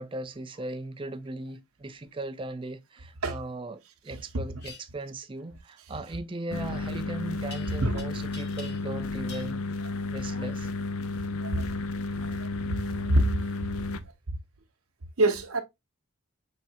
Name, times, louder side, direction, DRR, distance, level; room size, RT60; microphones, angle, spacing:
voice 1, 0.0-9.6 10.1-10.7, right 2 dB, 25° right, 0.4 m, -38 dB
sound 1, 4.6-4.8 7.5-8.0 8.3-9.0 9.3-9.5, left 5 dB, 50° left, 1.2 m, -45 dB
sound 2, 6.5-14.0, left 3 dB, 80° left, 0.5 m, -33 dB
voice 2, 12.2-13.3 15.2-15.6, right 1 dB, 80° right, 0.8 m, -26 dB
6.0 x 3.2 x 2.7 m
head